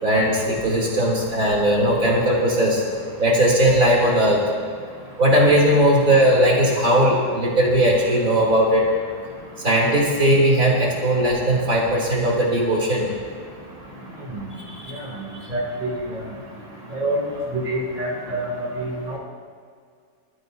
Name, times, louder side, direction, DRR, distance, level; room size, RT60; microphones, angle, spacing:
voice 1, 0.0-2.8 3.2-4.4 5.2-8.8 9.6-13.1 14.7-14.8, right 1 dB, 65° right, -4 dB, 3.6 m, -18 dB
voice 2, 15.5-15.9 16.9-17.2 17.5-19.2, right 1 dB, 25° right, -3 dB, 3.4 m, -26 dB
30.0 x 15.0 x 2.7 m, 2.1 s
omnidirectional pair, 1.6 m